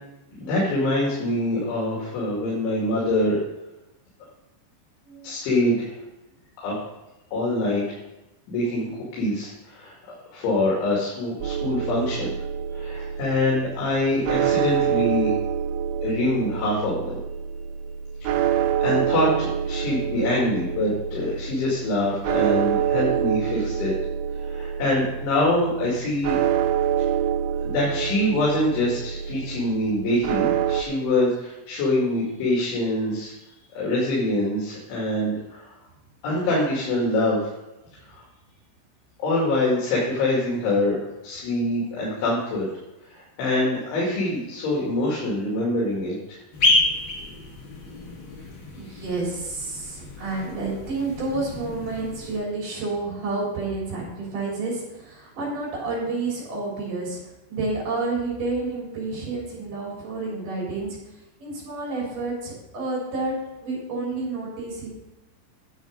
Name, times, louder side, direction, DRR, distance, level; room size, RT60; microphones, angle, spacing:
voice 1, 0.4-3.4 5.2-5.9 6.6-6.8 7.3-7.8 8.5-8.8 9.1-9.9 10.3-12.3 12.7-15.3 16.0-17.2 18.2-23.9 24.4-26.4 27.6-33.3 33.7-35.7 36.2-37.5 38.1-38.2 39.2-41.0 41.2-42.7 43.1-46.4 48.9-49.0, left 1 dB, 75° left, -5 dB, 4.8 m, -25 dB
sound 1, 11.4-30.8, right 9 dB, 90° right, 3.1 m, -26 dB
sound 2, 46.5-52.4, left 2 dB, 45° left, 1.6 m, -28 dB
voice 2, 48.8-57.2 57.5-61.0 61.4-63.3 63.6-64.9, right 3 dB, 45° right, -4 dB, 4.7 m, -29 dB
10.5 x 7.1 x 5.1 m, 0.98 s
omnidirectional pair, 5.4 m